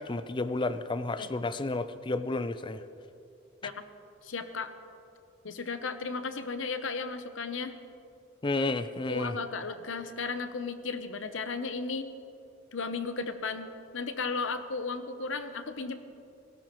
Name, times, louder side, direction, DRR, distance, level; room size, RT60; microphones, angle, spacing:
voice 1, 0.0-2.8 8.4-9.4, left 2 dB, 25° left, 12 dB, 0.5 m, -31 dB
voice 2, 4.2-4.7 5.4-7.8 9.1-12.1 12.7-16.0, left 4 dB, 80° left, 9 dB, 0.9 m, -35 dB
18.0 x 16.5 x 3.1 m, 2.6 s
head